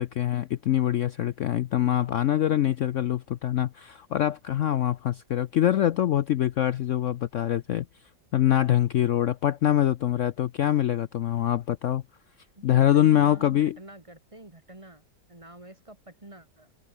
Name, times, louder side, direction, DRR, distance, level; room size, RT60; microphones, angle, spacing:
voice 1, 0.0-7.8 8.3-12.0 12.6-13.8, left 11 dB, 80° left, 0.6 m, -24 dB
voice 2, 12.6-16.7, right 1 dB, 15° right, 2.2 m, -47 dB
omnidirectional pair, 2.0 m